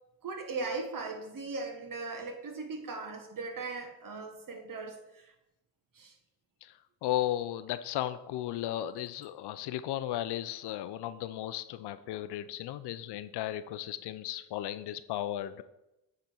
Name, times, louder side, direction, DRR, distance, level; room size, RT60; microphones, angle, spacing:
voice 1, 0.2-5.3 5.9-6.1, right 3 dB, 50° right, 5 dB, 1.6 m, -38 dB
voice 2, 7.0-15.6, left 13 dB, 65° left, 13 dB, 0.6 m, -35 dB
8.8 x 3.9 x 4.6 m, 0.92 s
hypercardioid pair, 50°, 44 cm